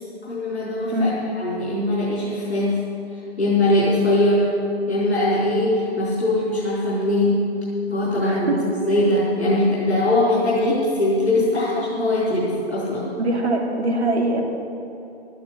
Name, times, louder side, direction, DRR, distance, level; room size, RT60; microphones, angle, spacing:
voice 1, 0.3-1.1 1.4-2.8 3.4-4.5 4.9-7.5 7.9-13.1, left 1 dB, 90° left, -8 dB, 4.7 m, -21 dB
voice 2, 0.9-1.2 8.2-8.6 13.2-14.4, right 1 dB, 80° right, 1 dB, 2.9 m, -22 dB
13.5 x 11.5 x 7.9 m, 2.8 s
figure-of-eight pair, 115°, 32 cm